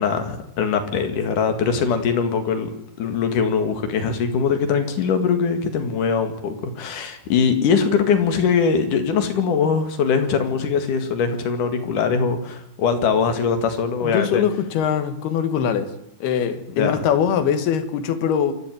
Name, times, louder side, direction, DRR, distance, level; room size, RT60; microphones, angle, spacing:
voice 1, 0.0-2.7 3.0-14.4 16.7-16.9, left 6 dB, 60° left, 7 dB, 3.2 m, -21 dB
voice 2, 14.0-15.9 16.2-18.5, left 8 dB, 80° left, 10 dB, 3.5 m, -22 dB
26.0 x 12.0 x 9.2 m, 0.78 s
omnidirectional pair, 4.5 m